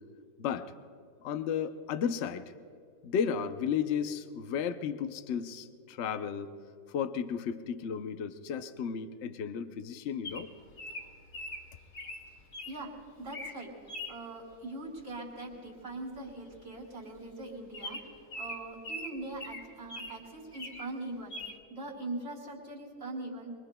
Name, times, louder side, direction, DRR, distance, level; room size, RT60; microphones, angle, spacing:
voice 1, 0.4-0.7 1.2-2.4 3.0-6.5 6.9-10.5, left 7 dB, 90° left, 10 dB, 0.6 m, -33 dB
Bird vocalization bird call bird song, 10.2-12.8 13.2-13.6 13.9-14.2 15.7-15.9 16.1-16.2 16.5-16.7 17.2-17.3 17.7-20.2 20.5-20.9 21.3-21.6, left 1 dB, 30° left, 1.1 m, -42 dB
voice 2, 12.7-23.5, right 2 dB, 65° right, -6 dB, 3.8 m, -42 dB
24.0 x 23.5 x 2.2 m, 2.3 s
omnidirectional pair, 2.0 m